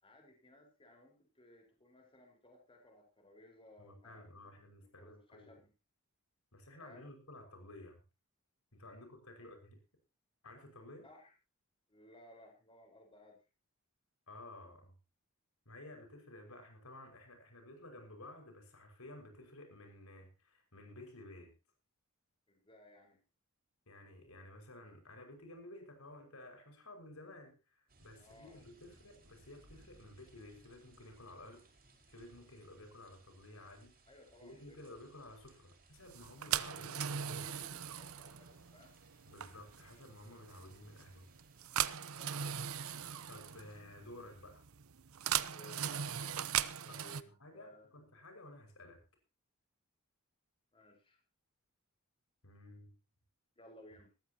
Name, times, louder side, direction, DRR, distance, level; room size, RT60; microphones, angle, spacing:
voice 1, 0.0-4.5 5.0-5.7 6.8-7.1 9.4-9.5 11.0-11.3 11.9-13.4 22.5-23.2 28.2-28.6 34.1-34.8 36.6-38.9 42.1-42.3 45.5-47.9 50.7-51.2 53.6-54.1, left 1 dB, 25° left, 2 dB, 4.8 m, -60 dB
voice 2, 3.8-5.5 6.5-8.0 8.7-9.8 10.4-11.1 14.3-14.9 15.7-21.5 23.9-31.6 32.1-33.9 34.4-37.6 39.3-41.3 42.9-44.6 46.9-49.0 52.4-53.0, left 1 dB, 85° left, 4 dB, 5.8 m, -54 dB
sound 1, 27.9-43.8, right 2 dB, 45° right, 5.3 m, -66 dB
sound 2, 36.1-47.2, right 9 dB, 75° right, 0.8 m, -39 dB
20.0 x 14.0 x 2.9 m, 0.30 s
head